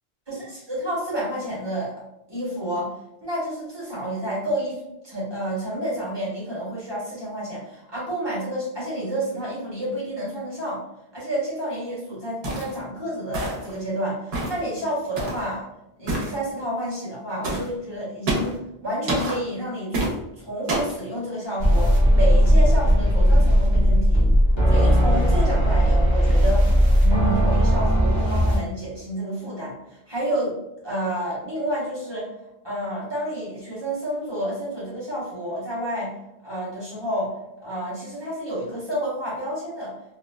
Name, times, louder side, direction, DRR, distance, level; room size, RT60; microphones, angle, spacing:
voice 1, 0.3-1.9 2.3-2.9 3.2-10.8 11.1-15.7 16.0-20.0 20.4-24.2 24.7-26.7 27.0-30.6 30.8-32.3 32.6-36.1 36.4-39.9, right 1 dB, 25° right, -7 dB, 1.0 m, -30 dB
sound 1, 12.4-12.8 13.3-13.8 14.3-14.6 15.2-15.5 16.1-16.3 17.4-17.7 18.3-18.6 19.1-19.4 19.9-20.1 20.7-21.0, right 1 dB, 75° right, 1.0 m, -26 dB
sound 2, 21.6-28.6, equal, 30° left, 0.9 m, -17 dB
2.8 x 2.1 x 2.2 m, 0.87 s
omnidirectional pair, 1.0 m